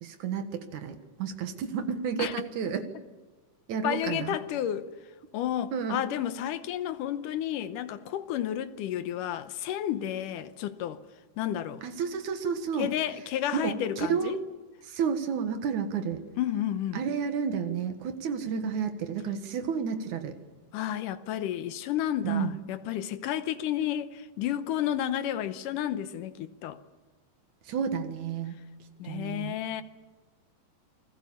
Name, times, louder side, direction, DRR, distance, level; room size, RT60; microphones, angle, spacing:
voice 1, 0.0-2.9 3.7-4.4 5.7-6.0 11.8-12.9 13.5-14.4 14.8-16.2 16.9-20.4 22.2-22.5 27.7-28.6 29.0-29.6, right 6 dB, 65° right, 2.9 m, -31 dB
voice 2, 3.8-4.9 5.3-11.0 11.4-11.8 12.8-14.4 16.4-17.0 20.7-26.8 29.0-29.8, left 11 dB, 80° left, 2.5 m, -31 dB
28.5 x 20.5 x 7.3 m
omnidirectional pair, 3.8 m